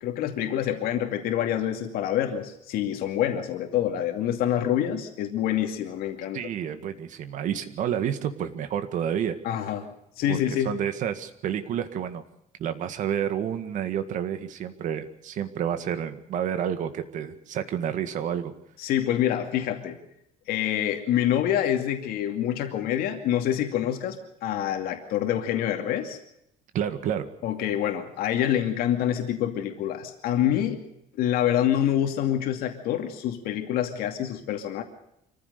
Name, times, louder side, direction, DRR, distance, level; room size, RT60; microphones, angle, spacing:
voice 1, 0.0-6.4 9.4-9.9 10.2-10.8 18.8-20.0 20.5-26.2 27.4-30.8 31.2-34.8, left 11 dB, 80° left, 5 dB, 2.5 m, -26 dB
voice 2, 6.3-9.4 10.3-10.4 10.7-12.2 12.6-18.5 26.7-27.3, right 9 dB, 55° right, 9 dB, 1.8 m, -29 dB
25.5 x 15.0 x 6.8 m, 0.80 s
cardioid pair, 175°, 15 cm